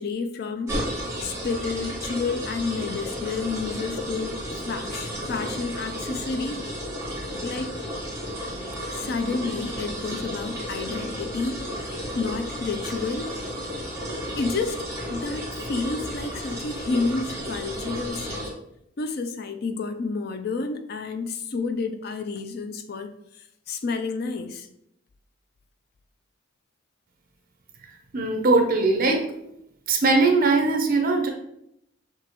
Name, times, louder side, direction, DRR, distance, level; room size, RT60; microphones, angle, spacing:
voice 1, 0.0-4.3 4.7-6.6 7.4-7.7 8.9-13.3 14.4-18.5 19.0-24.7, left 4 dB, 50° left, 8 dB, 0.4 m, -30 dB
sound 1, 0.7-18.5, equal, 15° right, 1.2 m, -33 dB
voice 2, 28.1-29.3 29.9-31.3, right 3 dB, 45° right, 3 dB, 0.8 m, -20 dB
6.0 x 2.8 x 2.9 m, 0.76 s
head